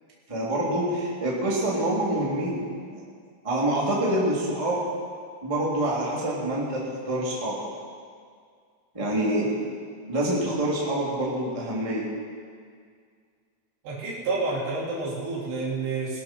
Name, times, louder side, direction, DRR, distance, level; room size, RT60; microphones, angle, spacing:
voice 1, 0.3-3.0 3.4-4.8 5.4-7.6 8.9-9.5 10.1-12.0, right 1 dB, 10° right, -6 dB, 2.4 m, -26 dB
voice 2, 13.8-16.2, right 3 dB, 75° right, -4 dB, 4.9 m, -29 dB
20.5 x 11.5 x 4.6 m, 2.1 s
omnidirectional pair, 5.1 m